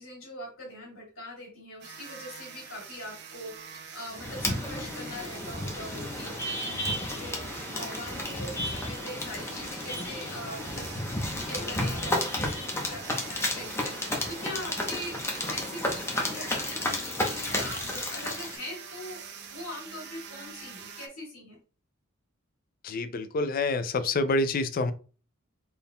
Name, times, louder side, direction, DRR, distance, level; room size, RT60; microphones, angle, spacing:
voice 1, 0.0-15.2 15.5-19.2 19.5-21.6, left 1 dB, 85° left, -4 dB, 2.1 m, -42 dB
sound 1, 1.8-21.1, right 6 dB, 55° right, 0.6 m, -45 dB
sound 2, 4.1-18.6, left 1 dB, 10° left, 0.8 m, -32 dB
voice 2, 22.8-24.9, left 2 dB, 45° left, 11 dB, 0.4 m, -27 dB
4.2 x 3.5 x 2.2 m, 0.36 s
head